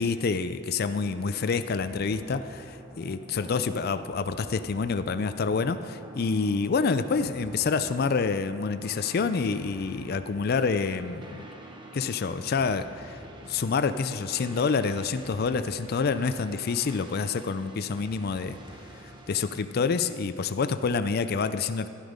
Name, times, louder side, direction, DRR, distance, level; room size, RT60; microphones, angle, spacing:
voice 1, 0.0-11.4 11.9-18.6 19.3-21.9, left 5 dB, 50° left, 11 dB, 0.4 m, -27 dB
sound 1, 0.9-19.6, right 1 dB, 25° right, 1.1 m, -47 dB
11.5 x 11.5 x 5.1 m, 2.7 s
head